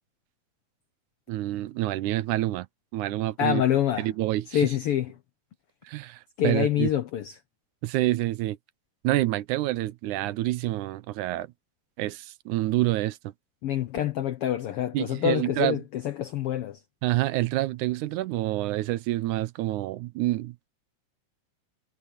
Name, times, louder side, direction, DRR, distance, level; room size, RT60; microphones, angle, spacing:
voice 1, 1.3-2.7 2.9-3.6 4.0-4.7 5.8-6.9 7.8-8.6 9.0-11.5 12.0-13.3 14.9-15.8 17.0-20.7, right 16 dB, 80° right, 2.0 m, -27 dB
voice 2, 3.4-4.1 4.5-5.1 6.4-7.3 13.6-16.8, left 11 dB, 85° left, 1.2 m, -26 dB
omnidirectional pair, 3.6 m